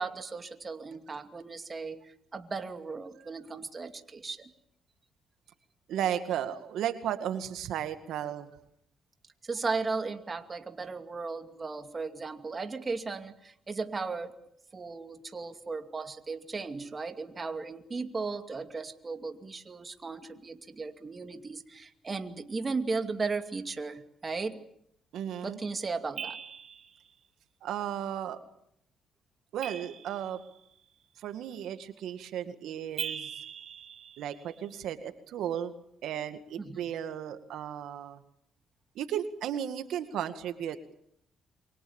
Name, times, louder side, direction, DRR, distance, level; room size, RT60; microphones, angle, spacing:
voice 1, 0.0-4.5 9.4-14.4 14.7-24.6 25.4-26.4 36.6-36.9, right 4 dB, 30° right, 7 dB, 2.4 m, -36 dB
voice 2, 5.9-8.5 25.1-25.6 27.6-28.4 29.5-30.4 31.2-33.3 34.2-35.7 36.0-38.2 39.0-41.0, right 10 dB, 80° right, 9 dB, 2.0 m, -34 dB
sound 1, 26.2-27.0 29.6-30.6 33.0-34.6, right 7 dB, 60° right, 2.4 m, -40 dB
28.5 x 24.5 x 7.2 m, 0.72 s
cardioid pair, 90°, 0 cm